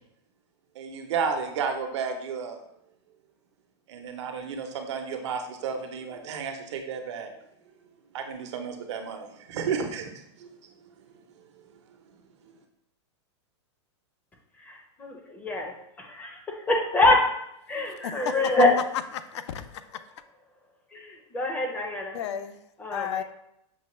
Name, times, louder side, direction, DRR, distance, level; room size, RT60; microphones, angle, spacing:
voice 1, 0.8-2.6 3.9-7.3 8.1-10.1 10.4-10.5, right 6 dB, 75° right, 4 dB, 0.7 m, -32 dB
voice 2, 14.6-15.7 16.0-17.2 17.7-18.7 20.9-22.2 22.8-23.2, left 2 dB, 10° left, 1 dB, 0.5 m, -25 dB
voice 3, 18.0-18.3 19.1-20.0 22.1-22.6 22.9-23.2, left 9 dB, 70° left, 11 dB, 0.4 m, -33 dB
6.1 x 2.1 x 3.0 m, 0.78 s
supercardioid pair, 150°, 15 cm